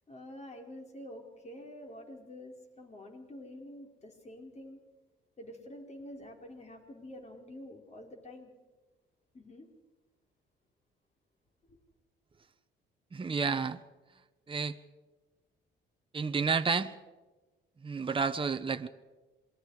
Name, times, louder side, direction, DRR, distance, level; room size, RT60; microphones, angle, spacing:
voice 1, 0.1-4.8 5.4-8.5 9.3-9.7 11.7-11.8, left 1 dB, 35° left, 2 dB, 4.6 m, -47 dB
voice 2, 13.1-13.8 14.5-14.8 16.1-16.9 17.8-18.9, right 5 dB, 25° right, 8 dB, 1.0 m, -30 dB
27.5 x 22.0 x 4.9 m, 1.2 s
cardioid pair, 90°, 20 cm